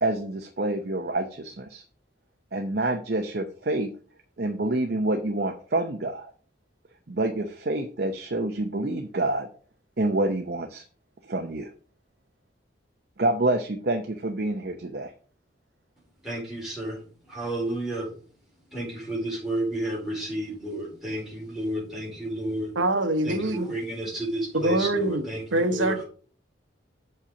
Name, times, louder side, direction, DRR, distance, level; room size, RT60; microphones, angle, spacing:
voice 1, 0.0-1.8 2.5-3.9 4.4-6.3 7.1-9.5 10.0-10.8 11.2-11.7 13.2-15.1, right 2 dB, 55° right, 0.7 m, -27 dB
voice 2, 16.2-18.1 18.7-22.8 23.2-26.0, right 1 dB, 5° right, 4.4 m, -31 dB
voice 3, 22.7-23.7 24.5-25.2 25.5-26.0, right 2 dB, 90° right, 1.1 m, -24 dB
7.0 x 5.6 x 5.0 m
head